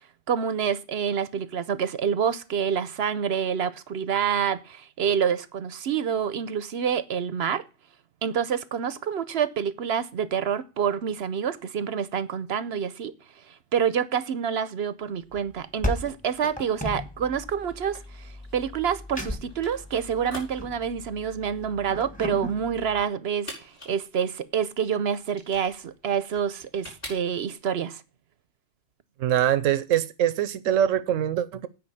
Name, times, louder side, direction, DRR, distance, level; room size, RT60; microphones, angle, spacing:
voice 1, 0.3-7.6 8.2-13.1 13.7-23.5 23.9-28.0, right 7 dB, 60° right, 0.9 m, -27 dB
sound 1, 15.3-23.0, left 1 dB, 5° left, 1.3 m, -36 dB
sound 2, 17.5-27.7, equal, 45° left, 5.8 m, -46 dB
voice 2, 29.2-31.7, right 10 dB, 85° right, 1.1 m, -23 dB
9.5 x 5.0 x 7.1 m
omnidirectional pair, 1.3 m